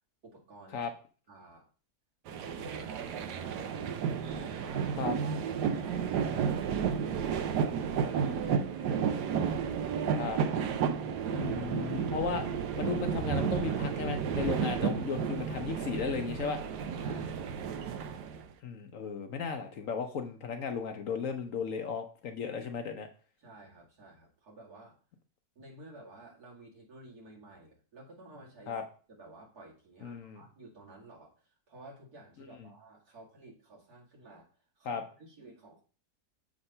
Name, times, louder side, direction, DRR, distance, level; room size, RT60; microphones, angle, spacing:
voice 1, 0.2-0.8 1.3-1.7 2.4-5.0 5.6-8.5 17.0-17.5 23.4-25.0 25.6-28.7 29.1-34.5 34.8-35.8, right 2 dB, 70° right, -3 dB, 2.8 m, -52 dB
sound 1, 2.3-18.5, right 7 dB, 85° right, 1.3 m, -32 dB
voice 2, 11.3-12.5 12.8-16.6 18.6-23.1 28.7-28.8 30.0-30.4 32.6-32.7 34.8-35.0, left 5 dB, 60° left, 6 dB, 1.0 m, -35 dB
7.1 x 3.6 x 5.4 m, 0.39 s
omnidirectional pair, 1.7 m